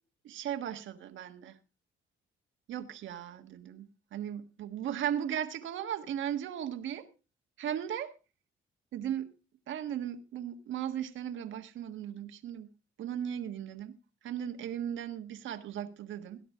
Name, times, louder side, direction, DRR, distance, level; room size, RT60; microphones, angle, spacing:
voice 1, 0.2-1.6 2.7-7.1 7.6-8.2 8.9-9.3 9.7-12.7 13.0-14.0 14.2-16.4, right 10 dB, 75° right, 1.6 m, -37 dB
18.0 x 10.5 x 3.7 m
cardioid pair, 90°, 20 cm